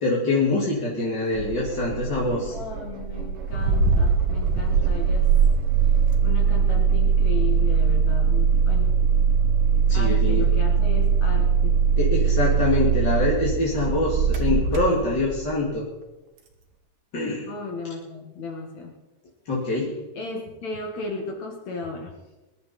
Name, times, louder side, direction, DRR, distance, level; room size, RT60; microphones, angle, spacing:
voice 1, 0.0-2.6 9.9-10.5 12.0-15.9 17.1-17.5 19.5-20.0, left 2 dB, 35° left, -4 dB, 1.9 m, -24 dB
Engine starting, 1.3-15.5, right 6 dB, 55° right, 1.6 m, -21 dB
voice 2, 2.5-5.3 6.2-9.0 9.6-11.8 17.5-18.9 20.2-22.1, left 3 dB, 55° left, 1 dB, 2.4 m, -35 dB
23.0 x 10.5 x 4.2 m, 1.1 s
omnidirectional pair, 4.9 m